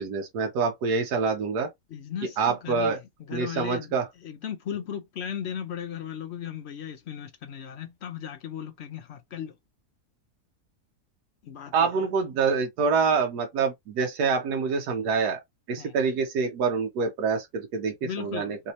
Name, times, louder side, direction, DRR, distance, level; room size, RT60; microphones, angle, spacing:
voice 1, 0.0-1.7 2.4-3.0 3.3-4.1 11.7-15.4 15.7-18.6, right 5 dB, 80° right, 1.3 m, -26 dB
voice 2, 1.9-3.9 4.2-9.6 11.4-11.9 15.8-15.9 18.0-18.6, left 9 dB, 65° left, 0.7 m, -36 dB
3.3 x 2.8 x 3.0 m
omnidirectional pair, 1.7 m